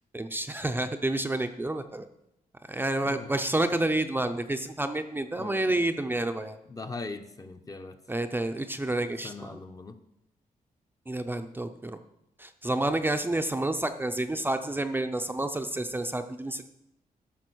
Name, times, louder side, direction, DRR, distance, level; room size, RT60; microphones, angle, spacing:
voice 1, 0.1-2.1 2.7-6.6 8.1-9.6 11.1-12.0 12.4-16.7, right 1 dB, 15° right, 6 dB, 0.6 m, -29 dB
voice 2, 6.7-8.0 9.2-10.0, left 3 dB, 25° left, 7 dB, 0.7 m, -40 dB
13.0 x 5.9 x 6.2 m, 0.84 s
wide cardioid pair, 140°, 15 cm